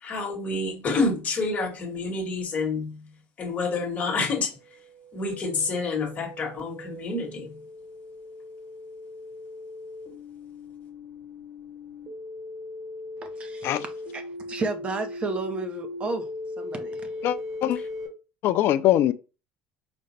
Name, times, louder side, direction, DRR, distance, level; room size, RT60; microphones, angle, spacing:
voice 1, 0.0-3.1 3.4-4.6 5.1-7.6, left 3 dB, 25° left, 1.3 m, -28 dB
sound 1, 4.8-18.1, left 2 dB, 45° right, 1.4 m, -39 dB
voice 2, 13.2-13.7 14.1-14.2 14.5-16.3 16.6-17.1, right 3 dB, 20° right, 0.7 m, -32 dB
voice 3, 17.2-17.8 18.4-19.1, left 12 dB, 45° left, 0.4 m, -22 dB
5.1 x 2.2 x 4.2 m
cardioid pair, 170°, 5 cm